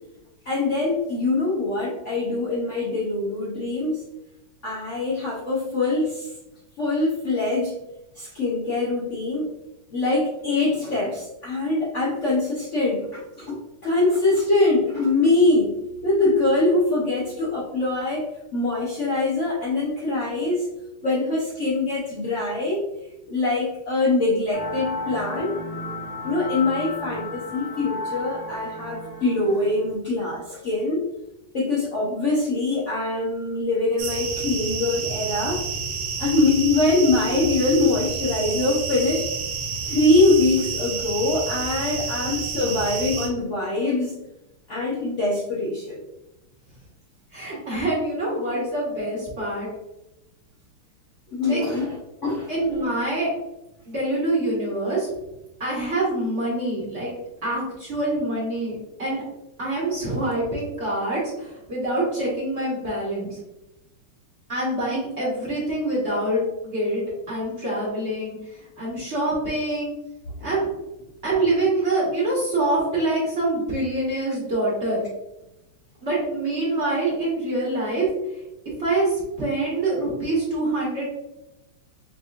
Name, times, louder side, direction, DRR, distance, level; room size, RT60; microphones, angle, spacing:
voice 1, 0.5-4.0 4.6-6.3 6.8-7.7 8.2-9.4 9.9-15.7 16.0-20.7 21.0-22.8 23.3-25.6 26.2-31.0 31.5-35.6 36.2-39.2 39.8-44.2 44.7-46.0 51.3-52.5 70.4-70.5, left 2 dB, 80° left, -7 dB, 0.6 m, -23 dB
sound 1, 24.5-29.9, left 2 dB, 40° left, 0.6 m, -33 dB
sound 2, 34.0-43.3, right 5 dB, 70° right, 1.4 m, -30 dB
voice 2, 47.3-49.7 51.5-51.6 52.5-53.3 53.9-55.1 55.6-57.1 57.4-59.2 59.6-63.4 64.5-69.9 70.4-70.7 71.2-75.1 76.0-78.1 78.8-81.0, right 2 dB, 40° right, -6 dB, 1.3 m, -25 dB
5.1 x 2.9 x 2.4 m, 0.95 s
omnidirectional pair, 2.4 m